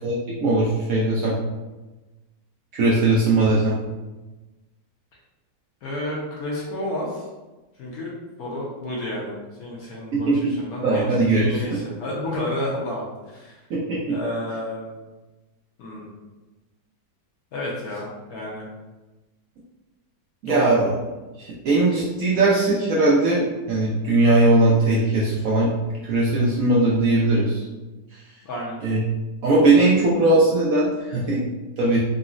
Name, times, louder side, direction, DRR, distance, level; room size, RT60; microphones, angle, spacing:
voice 1, 0.0-1.4 2.7-3.8 10.1-10.5 10.8-11.8 13.7-14.2 20.4-20.9 21.4-25.7 26.0-27.6 28.8-29.0 29.4-31.4 31.8-32.0, right 2 dB, 70° right, -6 dB, 0.8 m, -19 dB
voice 2, 5.8-7.2 7.8-8.1 8.4-10.3 10.6-13.6 14.1-14.9 15.8-16.1 17.5-18.7 20.5-20.9 28.4-28.8, left 1 dB, 70° left, -4 dB, 1.0 m, -30 dB
3.8 x 2.0 x 2.4 m, 1.1 s
omnidirectional pair, 1.9 m